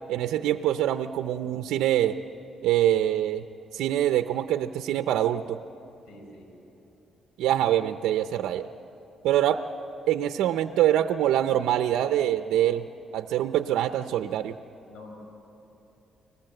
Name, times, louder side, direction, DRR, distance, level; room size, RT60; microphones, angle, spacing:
voice 1, 0.1-2.2 2.6-3.5 3.7-5.6 7.4-8.7 9.2-9.7 10.1-12.9 13.1-14.5, right 12 dB, 85° right, 9 dB, 0.6 m, -24 dB
voice 2, 6.1-6.5 14.2-14.4 14.9-15.1, left 2 dB, 85° left, 1 dB, 6.3 m, -47 dB
30.0 x 20.5 x 7.8 m, 2.9 s
cardioid pair, 90°, 0 cm